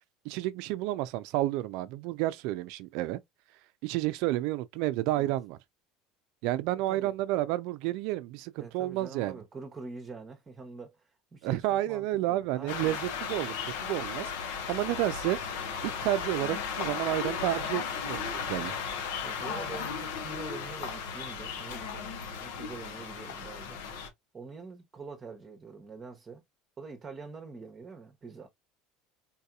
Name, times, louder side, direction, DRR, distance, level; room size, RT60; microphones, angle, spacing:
voice 1, 0.2-3.2 3.8-5.6 6.4-9.4 11.4-15.4 15.8-18.8, right 15 dB, 70° right, 0.4 m, -31 dB
voice 2, 8.6-13.0 18.4-18.7 19.2-23.8 24.3-26.4 26.8-28.5, right 4 dB, 30° right, 0.9 m, -45 dB
sound 1, 12.7-24.1, left 6 dB, 85° left, 0.9 m, -35 dB
3.9 x 2.8 x 2.3 m
supercardioid pair, 105°, 0 cm